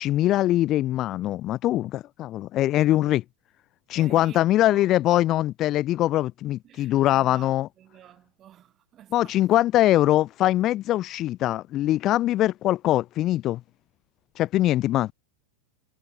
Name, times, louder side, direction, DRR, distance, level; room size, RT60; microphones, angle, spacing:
voice 1, 0.0-3.2 3.9-7.7 9.1-13.6 14.4-15.1, left 14 dB, 35° left, 0.8 m, -22 dB
voice 2, 3.9-4.9 6.6-9.6, right 11 dB, 30° right, 4.1 m, -49 dB
figure-of-eight pair, 90°, 0 cm